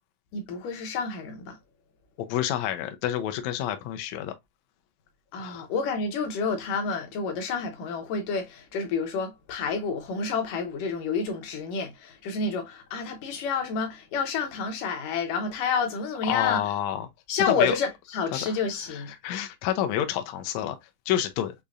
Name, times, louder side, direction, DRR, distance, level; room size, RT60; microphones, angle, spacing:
voice 1, 0.3-1.6 5.3-16.6 17.3-19.1, left 5 dB, 70° left, 2.4 m, -29 dB
voice 2, 2.2-4.3 5.4-5.7 16.3-17.1 17.5-17.7 18.3-18.6 18.9-20.8 21.1-21.5, left 11 dB, 90° left, 1.6 m, -28 dB
6.6 x 2.8 x 2.4 m
omnidirectional pair, 4.1 m